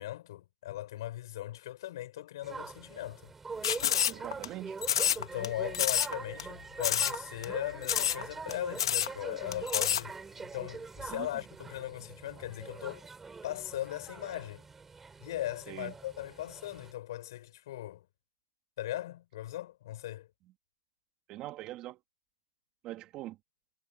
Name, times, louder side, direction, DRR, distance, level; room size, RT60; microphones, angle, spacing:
voice 1, 0.0-3.3 5.2-13.1 13.4-14.6 15.2-18.0 18.8-20.3, left 14 dB, 55° left, 6.8 m, -39 dB
sound 1, 2.4-16.9, right 4 dB, 10° right, 7.0 m, -44 dB
sound 2, 3.6-4.5 4.8-5.5 5.7-6.1 6.4-6.5 6.8-7.2 7.4-7.5 7.8-8.2 8.5-8.6 8.8-9.1 9.5-10.0, left 9 dB, 70° left, 2.1 m, -28 dB
voice 2, 4.1-4.8 11.1-11.3 15.7-15.9 21.3-22.0 22.8-23.4, right 16 dB, 25° right, 2.3 m, -42 dB
hypercardioid pair, 150°, 3 cm